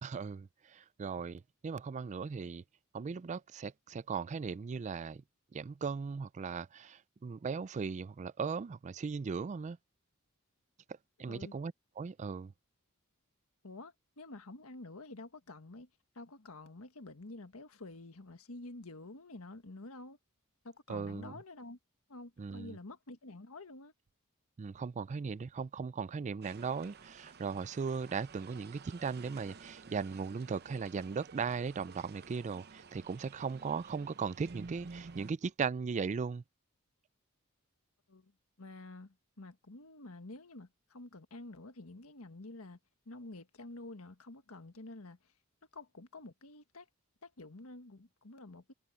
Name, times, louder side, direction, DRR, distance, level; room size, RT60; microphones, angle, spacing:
voice 1, 0.0-2.6 2.9-5.2 5.5-9.8 11.2-12.5 20.9-21.4 22.4-22.8 24.6-36.4, right 5 dB, 35° right, 0.3 m, -38 dB
voice 2, 13.6-15.9 16.1-20.2 20.6-21.8 22.1-23.9 38.1-38.3 38.6-42.8 43.0-45.3 45.7-46.9 47.2-48.7, left 2 dB, 80° left, 1.6 m, -49 dB
sound 1, 26.4-35.3, right 4 dB, 50° right, 0.7 m, -52 dB
head